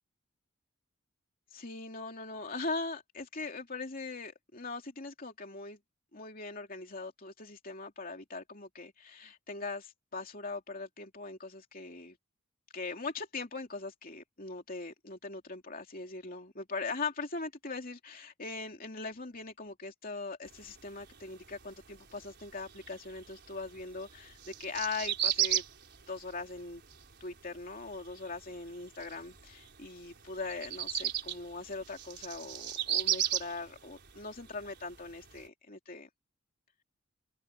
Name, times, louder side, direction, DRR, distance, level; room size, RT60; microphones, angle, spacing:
voice 1, 1.5-5.8 6.1-12.2 12.7-25.6 26.1-26.8 27.2-36.1, left 3 dB, 40° left, 2.9 m, -41 dB
sound 1, 20.5-35.5, right 11 dB, 55° right, 4.5 m, -36 dB
head